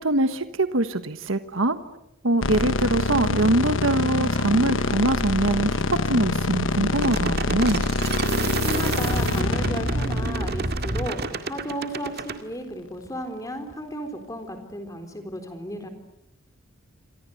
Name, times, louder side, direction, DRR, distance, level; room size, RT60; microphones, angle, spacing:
voice 1, 0.0-1.8 2.2-7.9, right 1 dB, 65° right, 10 dB, 1.4 m, -23 dB
sound 1, 2.4-11.6, left 2 dB, 60° left, 1.2 m, -26 dB
sound 2, 6.9-12.4, right 2 dB, 45° right, 2.0 m, -28 dB
voice 2, 8.6-11.2 11.5-15.9, equal, 15° left, 7 dB, 3.9 m, -34 dB
28.0 x 26.0 x 8.0 m, 0.85 s
head